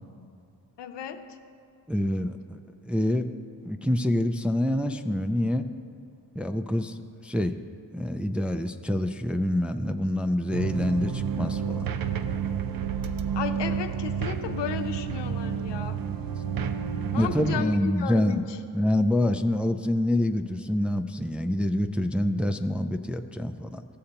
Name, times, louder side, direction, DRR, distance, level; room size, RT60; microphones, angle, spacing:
voice 1, 0.8-1.4 13.3-16.0 17.1-18.6, left 8 dB, 80° left, 7 dB, 0.7 m, -34 dB
voice 2, 1.9-2.6 2.8-3.3 3.6-5.7 6.4-7.6 7.9-11.9 17.2-18.4 18.7-23.9, left 1 dB, 5° right, 6 dB, 0.3 m, -26 dB
sound 1, 10.5-17.6, right 7 dB, 55° right, 0.6 m, -30 dB
15.5 x 6.6 x 2.9 m, 2.6 s
cardioid pair, 60°, 42 cm